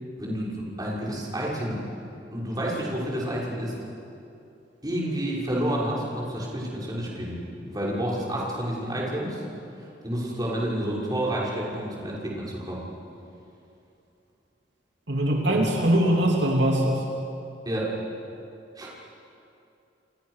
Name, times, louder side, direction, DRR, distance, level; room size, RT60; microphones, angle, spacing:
voice 1, 0.2-1.8 2.3-3.7 4.8-9.4 10.0-12.8 15.5-15.7 17.7-18.0 18.8-18.9, right 1 dB, 20° right, -5 dB, 6.1 m, -29 dB
voice 2, 15.1-17.0, right 1 dB, 70° right, -1 dB, 3.2 m, -22 dB
29.5 x 27.5 x 6.6 m, 2.7 s
head